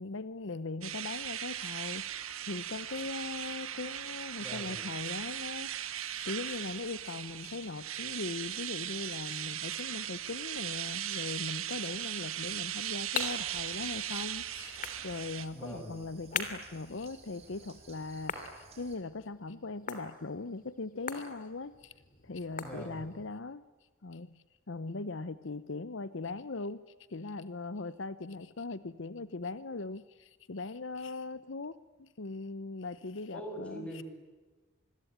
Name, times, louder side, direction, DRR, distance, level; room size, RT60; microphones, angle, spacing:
voice 1, 0.0-2.0 2.4-21.9 22.2-23.6 24.0-26.8 27.1-34.0, left 3 dB, 65° left, 16 dB, 0.8 m, -40 dB
sound 1, 0.8-15.5, right 11 dB, 85° right, 1.5 m, -38 dB
voice 2, 4.4-4.8 15.5-16.0 22.6-23.1 33.3-34.0, equal, 5° left, 2 dB, 6.7 m, -42 dB
sound 2, 12.4-23.3, left 5 dB, 40° left, 3.1 m, -43 dB
sound 3, 13.2-19.0, right 3 dB, 30° right, 4.5 m, -57 dB
27.0 x 21.5 x 9.4 m, 1.2 s
head